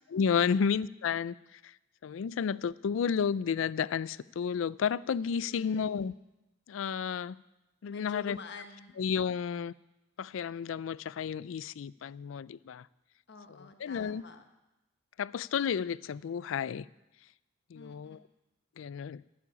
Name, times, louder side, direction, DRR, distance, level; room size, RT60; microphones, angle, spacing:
voice 1, 0.1-1.7 2.0-6.1 6.7-7.4 7.8-8.4 9.0-9.7 10.2-12.9 13.8-14.2 15.2-16.9 17.7-18.2 18.8-19.2, left 7 dB, 85° left, 20 dB, 0.4 m, -32 dB
voice 2, 5.4-5.9 7.9-9.0 13.3-14.5 17.7-18.2, left 4 dB, 60° left, 6 dB, 1.2 m, -48 dB
11.0 x 7.5 x 9.7 m, 0.97 s
head